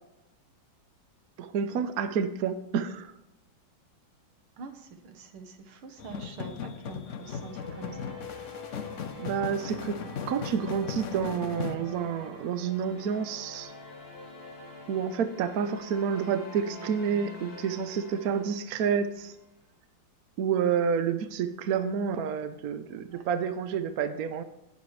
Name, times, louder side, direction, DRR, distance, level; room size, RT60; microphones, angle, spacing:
voice 1, 1.4-3.1 9.2-10.0 10.3-13.7 14.9-19.3 20.4-24.4, right 7 dB, 65° right, 11 dB, 0.9 m, -29 dB
voice 2, 4.6-8.1 23.1-23.2, right 4 dB, 90° right, 7 dB, 2.0 m, -45 dB
sound 1, 6.0-11.7, left 7 dB, 85° left, 0.6 m, -38 dB
sound 2, 7.0-19.4, left 3 dB, 30° left, 3.4 m, -45 dB
18.0 x 6.9 x 3.2 m, 0.89 s
omnidirectional pair, 2.2 m